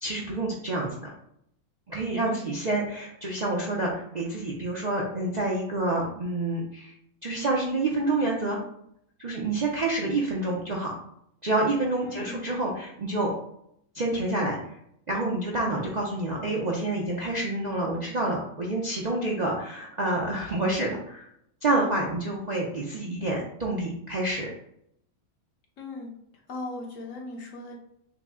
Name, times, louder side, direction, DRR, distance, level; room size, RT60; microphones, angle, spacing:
voice 1, 0.0-1.1 1.9-6.9 7.2-8.6 9.2-10.9 11.4-13.3 13.9-14.6 15.1-21.3 21.6-24.5, right 2 dB, 50° right, -3 dB, 0.5 m, -28 dB
voice 2, 12.0-12.4 25.8-26.1 26.5-27.8, left 2 dB, 65° left, 0 dB, 1.2 m, -38 dB
5.8 x 2.0 x 3.6 m, 0.72 s
omnidirectional pair, 1.6 m